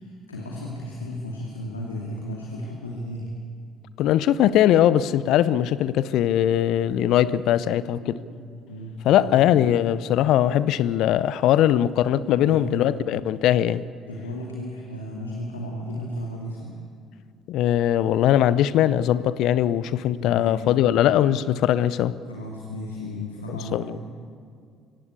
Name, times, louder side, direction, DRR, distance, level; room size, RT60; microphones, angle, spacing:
voice 1, 0.0-3.3 7.2-7.5 8.0-8.3 8.7-9.9 12.4-13.0 14.1-16.8 20.2-20.6 22.2-24.0, left 1 dB, 90° left, 2.6 m, -34 dB
voice 2, 4.0-8.2 9.0-13.8 17.5-22.1 23.5-23.8, left 11 dB, 65° left, 0.7 m, -20 dB
24.5 x 17.0 x 8.5 m
hypercardioid pair, 50°, 0 cm